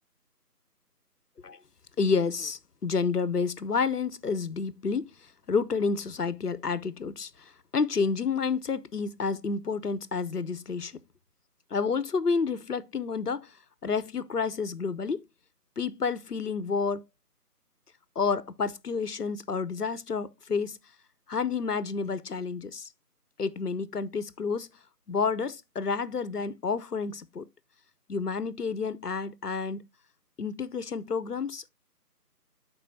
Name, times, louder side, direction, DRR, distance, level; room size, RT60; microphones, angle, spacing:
voice 1, 2.0-5.2 5.5-11.0 11.7-13.5 13.8-15.2 15.8-17.0 18.2-20.8 21.3-22.9 23.4-24.7 25.1-27.4 28.1-29.8 30.4-31.7, left 5 dB, 70° left, 0.8 m, -30 dB
12.0 x 4.3 x 2.6 m
figure-of-eight pair, 170°, 48 cm